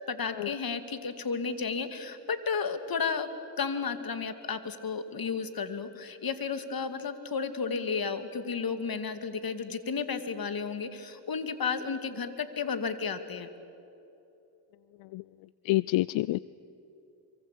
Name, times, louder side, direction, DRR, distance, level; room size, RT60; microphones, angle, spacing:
voice 1, 0.1-3.3 3.6-13.5, left 5 dB, 50° left, 10 dB, 2.4 m, -33 dB
voice 2, 15.6-16.4, left 18 dB, 80° left, 19 dB, 0.5 m, -27 dB
26.0 x 24.0 x 8.4 m, 2.9 s
supercardioid pair, 55°, 45 cm